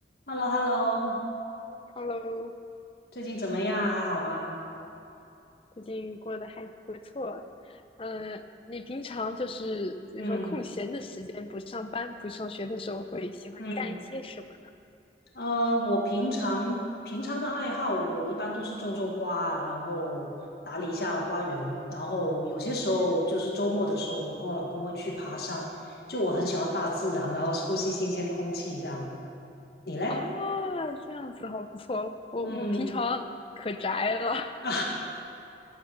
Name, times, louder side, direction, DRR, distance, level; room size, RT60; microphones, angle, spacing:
voice 1, 0.3-1.2 3.1-4.6 10.2-10.6 13.6-13.9 15.3-20.3 20.7-25.7 26.1-29.1 29.9-30.2 32.4-32.9 34.6-34.8, equal, 60° left, -1 dB, 1.6 m, -30 dB
voice 2, 2.0-2.5 5.8-14.4 30.1-33.3 33.6-34.6, left 2 dB, 30° left, 8 dB, 0.5 m, -34 dB
12.5 x 8.1 x 6.7 m, 2.7 s
head